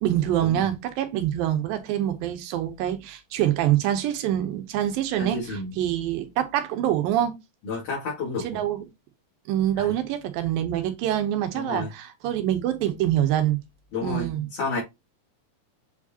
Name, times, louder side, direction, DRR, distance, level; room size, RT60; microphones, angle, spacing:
voice 1, 0.0-7.3 8.4-8.9 9.5-13.6 14.0-14.5, right 11 dB, 90° right, 2.7 m, -25 dB
voice 2, 5.2-5.7 7.7-8.6 9.8-10.0 11.6-11.9 13.9-14.8, left 3 dB, 65° left, 3.6 m, -31 dB
7.8 x 4.9 x 2.8 m
omnidirectional pair, 4.0 m